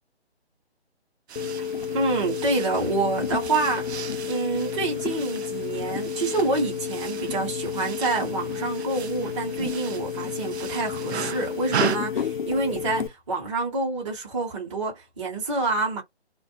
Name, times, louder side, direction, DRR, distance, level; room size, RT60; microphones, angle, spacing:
sound 1, 1.3-12.0, right 8 dB, 75° right, 0.5 m, -36 dB
sound 2, 1.4-13.1, left 7 dB, 50° left, 0.5 m, -31 dB
voice 1, 1.9-3.9 4.2-16.0, right 3 dB, 30° right, 1.0 m, -27 dB
2.5 x 2.0 x 2.6 m
figure-of-eight pair, 145°, 33 cm